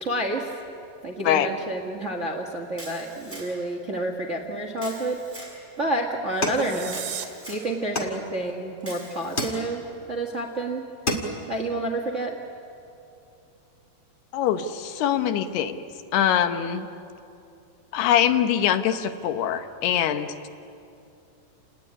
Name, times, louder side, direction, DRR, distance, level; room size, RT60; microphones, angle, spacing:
voice 1, 0.0-0.5 1.0-5.5 5.8-9.8 10.1-10.8 11.5-12.4, right 1 dB, 50° right, 2 dB, 0.8 m, -29 dB
Camera, 2.8-3.7 4.8-5.5 6.9-7.6 8.8-9.6, right 1 dB, 5° right, 6.8 m, -42 dB
sound 1, 6.3-7.3, right 10 dB, 85° right, 3.8 m, -36 dB
sound 2, 6.4-7.4 8.0-8.7 9.4-10.1 10.5-10.6 10.9-11.6, left 1 dB, 25° left, 1.5 m, -30 dB
voice 2, 14.3-15.8 16.1-16.9 17.9-20.5, left 10 dB, 90° left, 9 dB, 3.1 m, -23 dB
29.0 x 19.0 x 9.9 m, 2.7 s
omnidirectional pair, 4.5 m